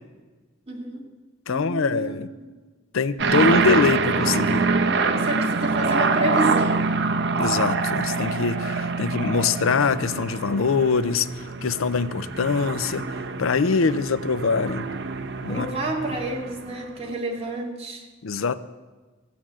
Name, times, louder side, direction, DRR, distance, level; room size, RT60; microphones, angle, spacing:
voice 1, 0.7-1.1 1.5-2.2 4.7-6.9 15.5-18.1, right 2 dB, 30° right, -1 dB, 2.2 m, -29 dB
voice 2, 1.5-2.3 2.9-4.7 7.4-11.3 11.6-13.1 13.4-14.9 15.4-15.7 18.2-18.6, left 4 dB, 80° left, 15 dB, 0.5 m, -23 dB
sound 1, 3.2-16.9, right 4 dB, 55° right, 0.9 m, -25 dB
15.0 x 8.5 x 7.5 m, 1.3 s
head